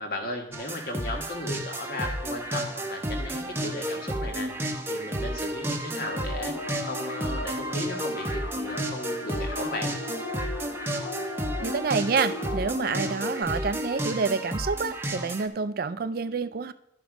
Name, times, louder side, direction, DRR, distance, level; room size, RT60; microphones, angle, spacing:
voice 1, 0.0-6.6 6.8-9.9, left 1 dB, 55° left, 3 dB, 1.6 m, -36 dB
sound 1, 0.5-15.5, right 1 dB, 15° right, 0.8 m, -32 dB
sound 2, 6.1-13.4, left 4 dB, 70° left, 0.5 m, -38 dB
voice 2, 11.6-16.7, right 5 dB, 55° right, 14 dB, 0.4 m, -28 dB
11.5 x 5.2 x 4.9 m, 0.79 s
head